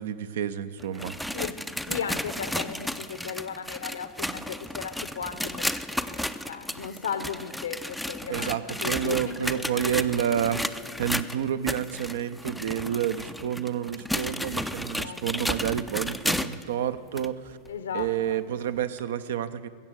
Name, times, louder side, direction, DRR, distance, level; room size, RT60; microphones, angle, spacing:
voice 1, 0.0-1.2 8.3-10.6 11.0-17.6 17.9-19.7, right 9 dB, 60° right, 13 dB, 0.5 m, -29 dB
sound 1, 0.8-16.7 17.2-17.3 18.0-18.1 19.0-19.1, equal, ahead, 0.4 m, -33 dB
voice 2, 1.9-9.8 13.1-13.4 14.9-15.5 17.7-18.4, left 7 dB, 65° left, 11 dB, 0.8 m, -36 dB
14.0 x 7.7 x 8.1 m, 2.1 s
figure-of-eight pair, 90°, 0 cm